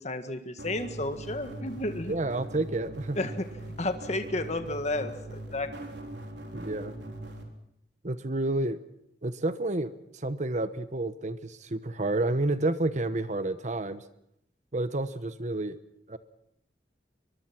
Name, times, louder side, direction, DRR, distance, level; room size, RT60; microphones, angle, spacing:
voice 1, 0.0-2.1 3.2-3.5 3.8-5.7, left 2 dB, 40° left, 8 dB, 1.6 m, -32 dB
sound 1, 0.6-7.4, right 1 dB, 85° right, 3.9 m, -41 dB
voice 2, 2.1-3.2 6.5-7.0 8.0-8.8 9.2-9.9 10.2-14.0 14.7-15.8 16.1-16.2, right 2 dB, 45° right, 12 dB, 1.1 m, -30 dB
23.0 x 23.0 x 6.0 m, 0.76 s
head